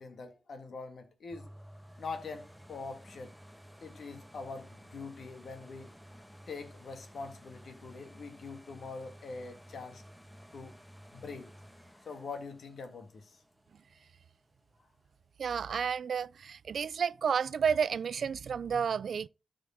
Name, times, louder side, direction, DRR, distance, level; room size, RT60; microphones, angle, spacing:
voice 1, 0.0-1.5 2.0-3.3 3.8-5.9 6.5-10.0 10.5-10.8 11.1-11.5 12.0-13.4, left 4 dB, 75° left, 1.9 m, -44 dB
sound 1, 1.3-15.0 15.5-15.6, equal, ahead, 1.1 m, -54 dB
voice 2, 15.4-19.3, right 6 dB, 75° right, 0.4 m, -31 dB
13.0 x 5.1 x 3.8 m
cardioid pair, 85°, 0 cm